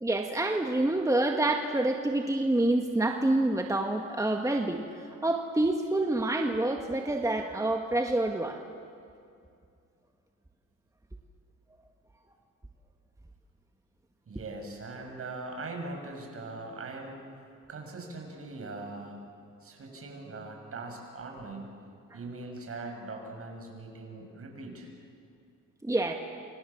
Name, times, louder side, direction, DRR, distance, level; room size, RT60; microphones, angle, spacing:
voice 1, 0.0-8.6 25.8-26.1, right 2 dB, 10° right, 3 dB, 1.9 m, -27 dB
voice 2, 14.3-17.2 17.7-19.2 19.6-21.7 22.1-24.9, right 3 dB, 50° right, 2 dB, 7.5 m, -41 dB
30.0 x 27.0 x 7.4 m, 2.5 s
cardioid pair, 90°, 30 cm